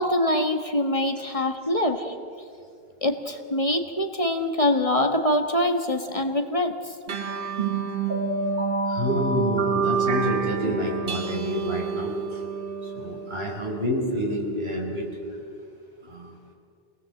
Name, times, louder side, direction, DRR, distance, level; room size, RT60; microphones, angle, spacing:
voice 1, 0.0-2.1 3.0-6.7, left 1 dB, 35° left, 5 dB, 1.4 m, -24 dB
sound 1, 7.1-14.0, right 5 dB, 60° right, 1.3 m, -27 dB
voice 2, 8.9-12.4 12.8-15.1 16.1-16.3, left 1 dB, 80° right, 0 dB, 4.7 m, -28 dB
26.5 x 19.0 x 7.8 m, 2.4 s
omnidirectional pair, 1.0 m